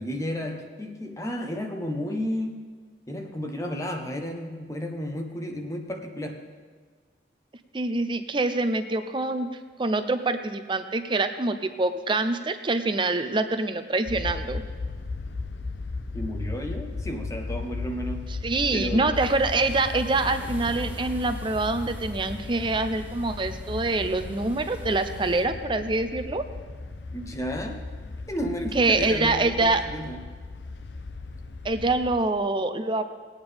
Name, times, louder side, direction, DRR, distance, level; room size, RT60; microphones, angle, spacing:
voice 1, 0.0-2.8 3.1-6.4 16.1-18.3 18.7-19.2 27.1-27.8 28.3-30.3, equal, 20° left, 3 dB, 0.9 m, -32 dB
voice 2, 7.7-9.5 9.8-14.6 18.4-26.4 28.7-29.8 31.6-33.0, right 2 dB, 30° right, 9 dB, 0.6 m, -25 dB
sound 1, 14.1-32.2, left 3 dB, 75° left, 0.7 m, -36 dB
sound 2, 19.1-25.4, right 1 dB, 10° right, 1.3 m, -47 dB
19.5 x 8.9 x 3.4 m, 1.5 s
head